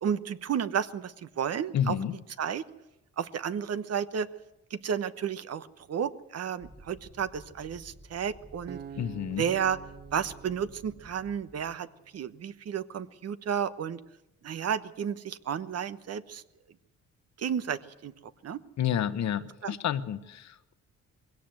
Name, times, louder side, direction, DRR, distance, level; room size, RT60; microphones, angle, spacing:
voice 1, 0.0-2.0 2.4-2.6 3.2-4.3 4.7-8.8 9.4-9.8 10.1-11.9 12.1-14.0 14.4-16.4 17.4-18.1 18.4-18.6 19.6-19.8, right 8 dB, 55° right, 14 dB, 1.1 m, -32 dB
voice 2, 1.7-2.1 9.0-9.5 18.8-20.7, left 9 dB, 65° left, 12 dB, 1.2 m, -30 dB
sound 1, 6.6-11.7, right 1 dB, 5° right, 1.7 m, -53 dB
Acoustic guitar, 8.7-11.9, right 8 dB, 35° right, 0.7 m, -47 dB
21.0 x 17.0 x 7.8 m, 0.92 s
cardioid pair, 90°, 30 cm